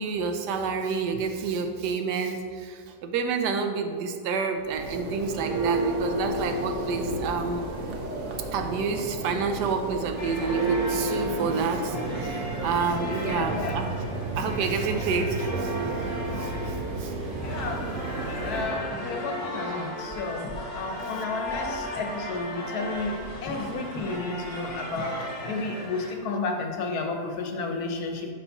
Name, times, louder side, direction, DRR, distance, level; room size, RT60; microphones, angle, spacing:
voice 1, 0.0-7.6 8.5-13.9 14.3-15.7 16.4-16.5 17.0-17.1, right 5 dB, 80° right, 6 dB, 1.2 m, -29 dB
Church bell, 4.6-18.8, right 2 dB, 60° right, 0.8 m, -31 dB
sound 1, 10.2-26.1, left 1 dB, 30° left, 0.8 m, -36 dB
voice 2, 13.2-13.8 17.4-18.0 18.2-28.3, left 3 dB, 70° left, 4 dB, 1.1 m, -32 dB
5.4 x 4.2 x 5.6 m, 2.1 s
omnidirectional pair, 1.8 m